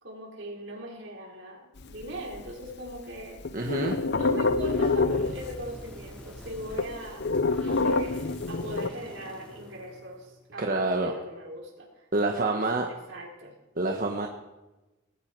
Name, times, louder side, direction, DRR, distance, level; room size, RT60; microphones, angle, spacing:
voice 1, 0.0-3.4 4.1-7.2 7.5-13.5, right 1 dB, 65° right, -2 dB, 4.8 m, -40 dB
sound 1, 1.8-2.9 3.2-5.8 6.1-6.2 6.4-8.9, left 3 dB, 55° left, 0.8 m, -27 dB
voice 2, 3.5-4.0 10.6-11.1 12.1-12.9 13.8-14.3, right 2 dB, 45° right, 3 dB, 1.3 m, -27 dB
sound 2, 4.5-10.6, equal, 5° left, 3.9 m, -45 dB
19.0 x 16.5 x 4.7 m, 1.1 s
head